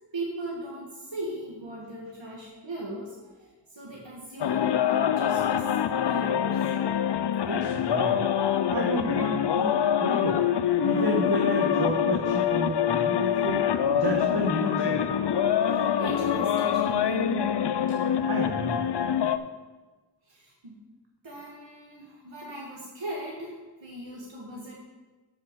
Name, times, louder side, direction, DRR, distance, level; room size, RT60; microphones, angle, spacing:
voice 1, 0.1-3.2 3.7-6.6 15.6-17.5 20.3-20.8 21.2-24.7, right 1 dB, 80° right, -4 dB, 1.7 m, -38 dB
sound 1, 4.4-19.4, left 9 dB, 70° left, 0.5 m, -25 dB
voice 2, 7.5-8.3 8.7-10.4 10.8-13.7 13.9-15.1 18.3-18.9, right 1 dB, 60° right, 0 dB, 1.2 m, -31 dB
6.8 x 6.6 x 6.5 m, 1.2 s
wide cardioid pair, 45°, 44 cm